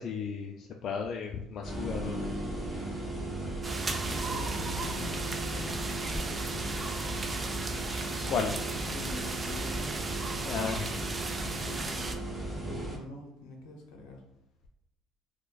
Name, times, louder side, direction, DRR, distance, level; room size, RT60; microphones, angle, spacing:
voice 1, 0.0-2.3 8.3-8.5 10.4-10.8, left 6 dB, 55° left, 2 dB, 0.3 m, -34 dB
sound 1, 1.6-4.9 5.2-5.4, left 1 dB, 15° left, 1.1 m, -44 dB
sound 2, 1.6-13.0, right 2 dB, 10° right, 1.1 m, -36 dB
sound 3, 3.6-12.2, right 3 dB, 30° right, 0.4 m, -36 dB
voice 2, 4.0-6.6 8.9-9.9 11.2-12.0 12.5-14.2, left 2 dB, 85° left, 2 dB, 0.7 m, -45 dB
4.3 x 2.1 x 2.3 m, 0.86 s
supercardioid pair, 85°, 0 cm